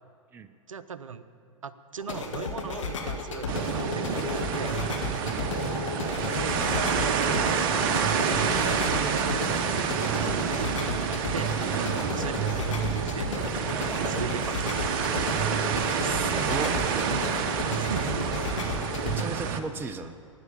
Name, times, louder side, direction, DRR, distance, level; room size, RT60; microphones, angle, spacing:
voice 1, 0.7-1.2 1.6-4.8 6.4-7.6 8.1-15.0 17.8-18.3, right 6 dB, 75° right, 14 dB, 0.6 m, -39 dB
sound 1, 2.0-19.2, left 4 dB, 65° left, 1.5 m, -34 dB
sound 2, 3.5-19.6, right 7 dB, 45° right, 0.8 m, -28 dB
sound 3, 3.6-17.3, equal, 20° left, 2.9 m, -46 dB
voice 2, 16.0-16.7 19.0-20.2, right 5 dB, 10° right, 10 dB, 0.4 m, -35 dB
12.5 x 9.4 x 7.0 m, 2.5 s
figure-of-eight pair, 100°, 17 cm